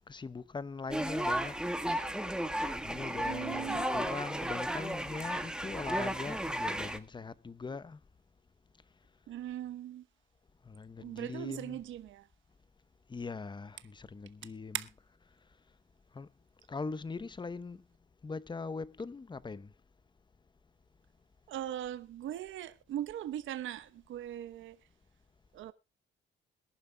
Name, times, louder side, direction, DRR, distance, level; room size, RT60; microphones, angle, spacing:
voice 1, 0.1-1.5 2.8-8.0 10.6-11.8 13.1-14.8 16.1-16.3 16.7-17.8 18.2-19.7, left 4 dB, 25° left, 0.8 m, -41 dB
sound 1, 0.9-7.0, right 1 dB, 5° right, 1.4 m, -34 dB
voice 2, 3.2-3.9 9.3-10.0 11.0-12.2 14.7-14.9 21.5-24.8 25.5-25.7, right 12 dB, 80° right, 1.0 m, -39 dB
22.0 x 11.0 x 2.2 m
cardioid pair, 90°, 20 cm